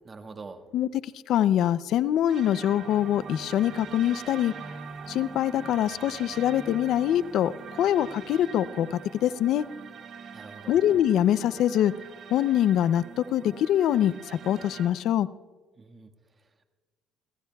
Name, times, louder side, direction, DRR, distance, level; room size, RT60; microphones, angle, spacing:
voice 1, 0.0-0.7 10.3-10.8 15.8-16.6, right 4 dB, 30° right, 6 dB, 1.5 m, -45 dB
voice 2, 0.7-4.5 5.1-7.5 7.8-9.6 10.7-11.9 12.3-15.3, left 11 dB, 65° left, 17 dB, 0.5 m, -24 dB
sound 1, 2.3-14.9, right 6 dB, 60° right, 2.0 m, -43 dB
29.5 x 16.5 x 2.3 m, 1.4 s
cardioid pair, 100°, 0 cm